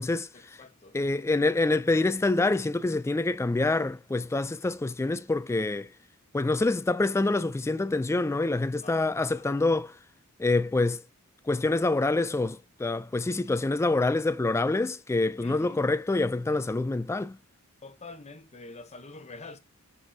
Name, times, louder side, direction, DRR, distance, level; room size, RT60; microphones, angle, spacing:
voice 1, 0.3-1.0 8.8-9.0 9.4-9.6 15.4-15.8 17.8-19.6, left 3 dB, 30° left, 0.8 m, -46 dB
voice 2, 0.9-5.9 6.3-9.9 10.4-11.0 11.5-17.4, left 2 dB, 10° left, 0.3 m, -26 dB
7.1 x 6.0 x 2.7 m
head